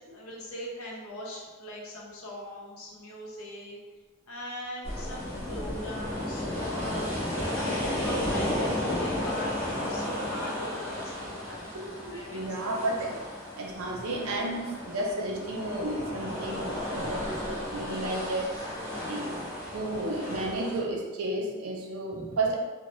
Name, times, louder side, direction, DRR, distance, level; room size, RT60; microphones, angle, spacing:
voice 1, 0.1-3.8 4.3-7.3 7.6-11.7 12.1-12.8 16.9-17.2 22.2-22.4, equal, 85° left, -3 dB, 0.7 m, -40 dB
sound 1, 4.8-20.8, left 1 dB, 30° left, 1.4 m, -33 dB
voice 2, 12.0-13.1 13.5-18.5 19.1-19.3 19.7-22.6, right 2 dB, 90° right, -1 dB, 0.6 m, -32 dB
3.0 x 2.1 x 3.0 m, 1.3 s
head